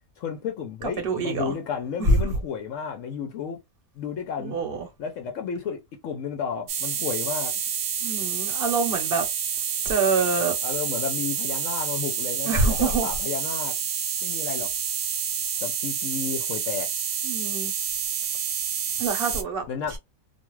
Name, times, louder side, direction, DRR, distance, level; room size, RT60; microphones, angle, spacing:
voice 1, 0.2-3.6 4.0-4.6 5.0-7.6 10.6-13.8 14.2-14.7 15.6-16.9 19.7-20.0, left 7 dB, 70° left, 0.9 m, -32 dB
voice 2, 0.8-1.5 2.0-2.2 4.4-4.9 8.0-9.2 9.8-10.5 12.4-13.1 17.2-17.7 19.0-19.7, right 3 dB, 45° right, 0.9 m, -25 dB
sound 1, 6.7-19.4, right 7 dB, 65° right, 0.6 m, -28 dB
2.5 x 2.3 x 3.0 m
omnidirectional pair, 1.5 m